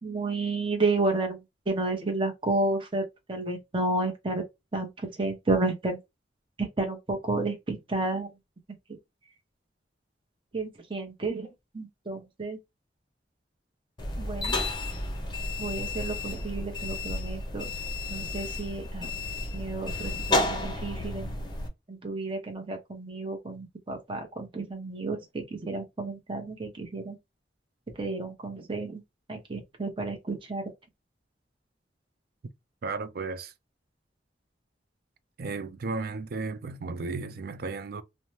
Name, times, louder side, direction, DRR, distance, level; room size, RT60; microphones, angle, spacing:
voice 1, 0.0-4.4 4.7-6.0 6.6-8.3 10.5-11.5 11.7-12.6 14.2-14.6 15.6-17.7 18.1-19.1 19.5-21.3 21.9-27.2 28.0-29.0 29.3-30.7, right 2 dB, 30° right, 0.8 m, -31 dB
sound 1, 14.0-21.7, left 2 dB, 25° left, 0.7 m, -32 dB
voice 2, 32.8-33.5 35.4-38.0, right 4 dB, 55° right, 0.4 m, -34 dB
2.6 x 2.1 x 3.1 m
head